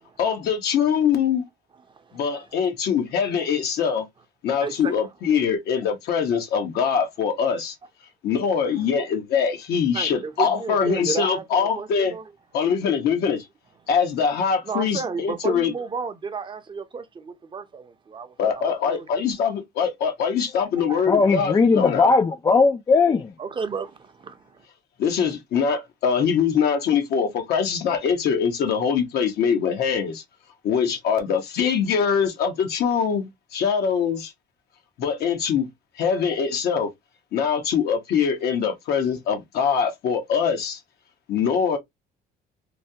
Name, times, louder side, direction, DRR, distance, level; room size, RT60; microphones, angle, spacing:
voice 1, 0.2-1.4 2.1-4.0 4.4-7.7 8.2-12.1 12.5-13.4 13.9-15.7 18.4-22.1 25.0-30.2 30.6-34.3 35.0-35.7 36.0-36.9 37.3-40.8 41.3-41.8, left 7 dB, 70° left, 1.0 m, -23 dB
voice 2, 4.6-5.1 8.8-8.9 9.9-12.2 14.6-19.3 20.8-21.3 23.4-24.5, right 5 dB, 30° right, 0.6 m, -33 dB
voice 3, 21.1-23.3, left 4 dB, 25° left, 0.3 m, -18 dB
3.2 x 2.2 x 2.7 m
cardioid pair, 110°, 17 cm